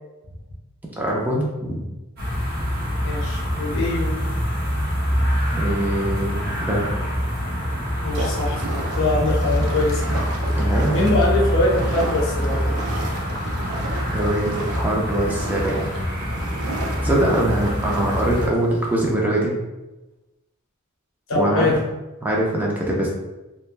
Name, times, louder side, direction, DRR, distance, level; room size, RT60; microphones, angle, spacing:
voice 1, 1.0-1.8 5.5-6.9 10.6-11.0 14.1-15.9 17.0-19.6 21.4-21.7 22.2-23.1, right 1 dB, 10° right, -3 dB, 0.4 m, -23 dB
sound 1, 2.2-18.5, equal, 50° right, 0.9 m, -25 dB
voice 2, 3.0-4.2 8.0-8.6 8.9-10.0 10.9-12.7 17.0-17.2 21.3-21.8, left 2 dB, 60° left, -3 dB, 0.7 m, -23 dB
sound 2, 8.1-19.2, right 2 dB, 75° right, 0.5 m, -34 dB
3.2 x 2.1 x 2.4 m, 1.0 s
head